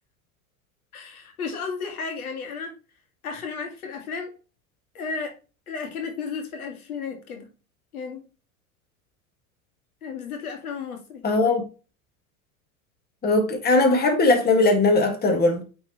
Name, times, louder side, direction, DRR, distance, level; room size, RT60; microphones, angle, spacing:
voice 1, 0.9-2.7 3.2-4.3 4.9-5.4 5.7-7.5 7.9-8.2 10.0-11.2, left 5 dB, 75° left, 1.8 m, -33 dB
voice 2, 11.2-11.6 13.2-15.6, left 2 dB, 20° left, 1.7 m, -19 dB
8.7 x 3.8 x 3.0 m
hypercardioid pair, 85°, 44 cm